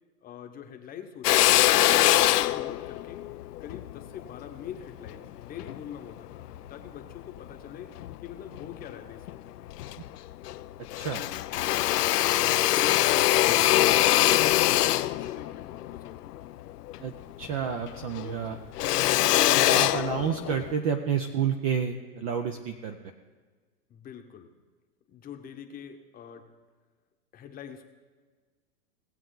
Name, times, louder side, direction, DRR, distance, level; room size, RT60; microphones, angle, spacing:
voice 1, 0.2-3.2 3.6-7.9 8.2-9.4 11.9-16.4 18.3-18.6 23.9-24.5 25.1-26.5 27.3-27.8, left 8 dB, 20° left, 5 dB, 0.9 m, -43 dB
Drill, 1.2-5.8 6.3-7.5 8.0-8.9 9.3-9.4 9.6-10.6 10.9-17.6 17.9-20.7, left 15 dB, 80° left, 0.6 m, -24 dB
voice 2, 17.4-18.6 19.7-23.0, right 7 dB, 25° right, 6 dB, 0.4 m, -29 dB
18.5 x 7.6 x 3.8 m, 1.4 s
hypercardioid pair, 140°, 46 cm